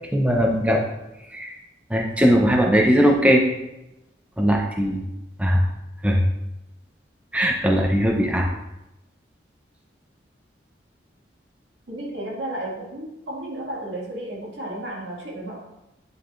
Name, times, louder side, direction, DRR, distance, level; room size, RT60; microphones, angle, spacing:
voice 1, 0.1-0.8 1.3-1.6 1.9-3.4 4.4-5.0 5.4-5.6 6.0-6.2 7.3-8.5, equal, 5° right, 0 dB, 0.5 m, -19 dB
voice 2, 11.9-15.6, right 1 dB, 75° right, -4 dB, 1.9 m, -33 dB
9.3 x 4.7 x 2.5 m, 0.91 s
head